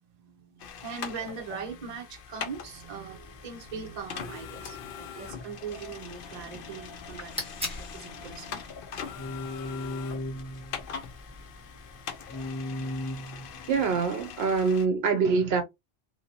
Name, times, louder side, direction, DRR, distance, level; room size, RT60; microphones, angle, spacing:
voice 1, 0.1-8.6 11.3-11.6, right 5 dB, 40° right, 0.8 m, -41 dB
sound 1, 0.6-14.9, left 7 dB, 60° left, 0.7 m, -42 dB
sound 2, 2.5-14.0, left 1 dB, 25° left, 0.4 m, -41 dB
sound 3, 7.1-12.1, left 1 dB, 5° right, 1.3 m, -43 dB
voice 2, 13.7-15.6, right 5 dB, 70° right, 0.8 m, -25 dB
3.1 x 2.9 x 2.7 m
omnidirectional pair, 1.1 m